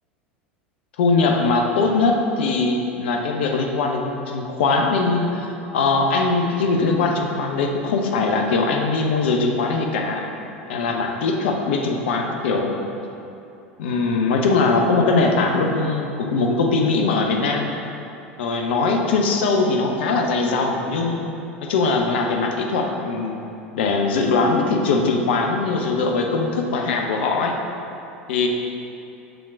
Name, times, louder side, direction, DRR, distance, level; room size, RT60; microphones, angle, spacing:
voice 1, 1.0-10.2 10.7-12.8 13.8-17.7 18.4-21.3 21.6-23.4 23.7-27.5 28.3-28.5, left 3 dB, 65° left, 2 dB, 0.8 m, -21 dB
6.9 x 3.8 x 6.1 m, 2.8 s
figure-of-eight pair, 80°, 6 cm